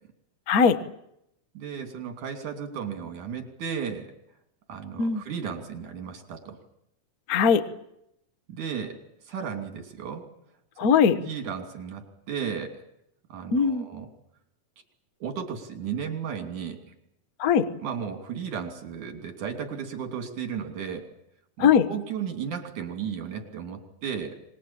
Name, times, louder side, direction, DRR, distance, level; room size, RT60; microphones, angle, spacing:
voice 1, 0.5-0.8 5.0-5.2 7.3-7.6 10.8-11.2 13.5-13.8 17.4-17.6 21.6-21.9, left 6 dB, 50° left, 11 dB, 1.0 m, -20 dB
voice 2, 1.5-4.1 4.7-6.6 8.5-9.0 9.2-10.3 11.2-12.8 13.3-14.1 15.2-16.8 17.8-21.1 21.6-24.4, right 7 dB, 75° right, 5 dB, 4.3 m, -34 dB
25.5 x 21.0 x 8.8 m, 0.79 s
omnidirectional pair, 3.5 m